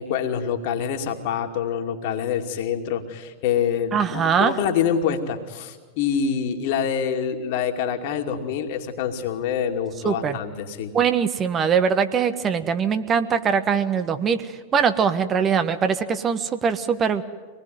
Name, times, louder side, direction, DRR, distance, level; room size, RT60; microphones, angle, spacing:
voice 1, 0.0-10.9, left 7 dB, 50° left, 4 dB, 2.6 m, -26 dB
voice 2, 3.9-4.6 10.0-10.4 10.9-17.2, right 7 dB, 25° right, 10 dB, 1.3 m, -22 dB
25.5 x 19.5 x 9.5 m, 1.5 s
figure-of-eight pair, 90°, 0 cm